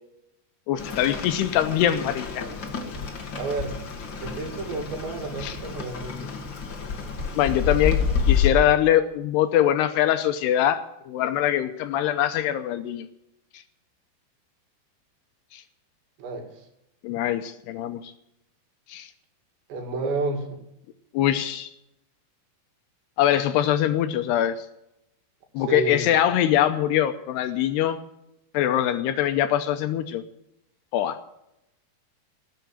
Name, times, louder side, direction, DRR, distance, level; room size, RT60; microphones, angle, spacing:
voice 1, 0.7-2.5 5.4-5.6 7.4-8.0 8.3-13.1 13.5-13.6 15.5-15.6 17.0-18.1 18.9-19.1 21.1-21.7 23.2-24.7 25.5-28.0 28.5-30.2 30.9-31.2, left 11 dB, 80° left, 9 dB, 2.6 m, -23 dB
Rain, 0.8-8.5, left 7 dB, 50° left, 1.4 m, -29 dB
voice 2, 3.3-3.7 4.2-6.3 7.7-7.8 16.2-16.7 19.7-20.6 25.6-26.1, right 3 dB, 75° right, 3 dB, 4.7 m, -31 dB
18.5 x 8.1 x 7.8 m, 0.84 s
omnidirectional pair, 5.2 m